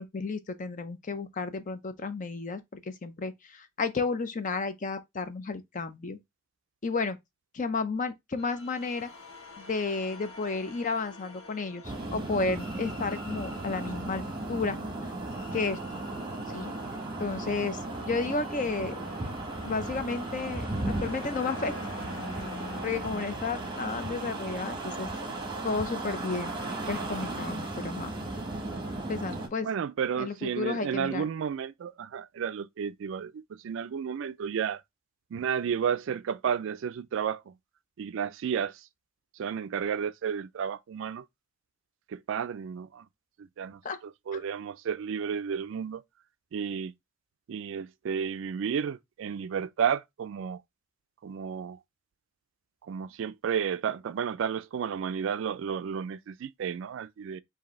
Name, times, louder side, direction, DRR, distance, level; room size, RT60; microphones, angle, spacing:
voice 1, 0.0-6.2 6.8-7.2 7.5-9.1 9.6-15.1 15.5-16.0 16.5-16.7 17.2-19.0 19.6-21.7 22.8-25.1 25.6-26.5 26.9-28.1 29.1-29.7 30.2-31.2 43.8-44.0, left 4 dB, 40° left, 0.5 m, -32 dB
sound 1, 8.4-25.4, left 2 dB, 80° left, 1.2 m, -47 dB
sound 2, 11.8-29.5, right 2 dB, 20° right, 1.0 m, -36 dB
voice 2, 29.6-34.8 35.3-37.5 38.0-38.8 39.4-41.2 42.1-43.0 43.6-43.8 44.3-46.0 46.5-46.9 47.5-50.6 51.2-51.8 52.9-57.4, right 7 dB, 60° right, 0.3 m, -32 dB
4.8 x 2.7 x 3.0 m
head